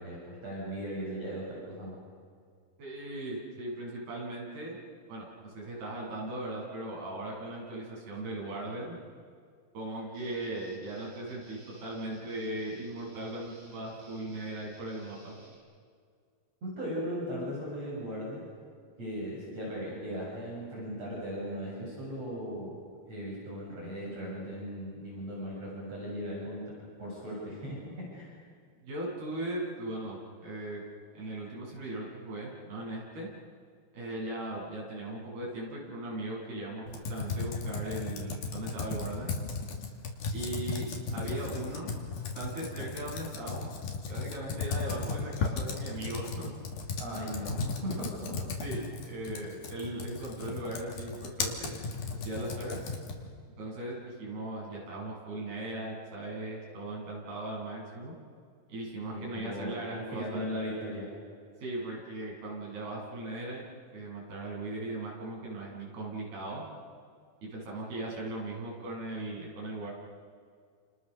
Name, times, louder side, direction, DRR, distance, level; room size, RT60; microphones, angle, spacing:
voice 1, 0.0-2.0 16.6-18.4 19.0-22.7 23.1-28.3 41.1-41.3 47.0-48.3 48.7-48.9 59.0-61.1, equal, 40° right, -5 dB, 8.5 m, -38 dB
voice 2, 2.8-4.8 5.1-9.0 9.7-15.4 28.8-30.8 31.1-33.3 33.9-39.3 40.3-41.9 42.1-43.7 44.1-46.5 48.6-51.8 52.1-52.8 53.6-58.1 58.7-60.4 61.6-63.6 63.9-66.7 67.4-69.9, right 2 dB, 80° right, -3 dB, 9.5 m, -38 dB
Guitar, 10.1-15.5, right 1 dB, 15° right, 7.3 m, -56 dB
Computer keyboard, 36.9-53.3, left 4 dB, 90° left, 4.8 m, -36 dB
30.0 x 29.0 x 6.9 m, 2.1 s
omnidirectional pair, 4.5 m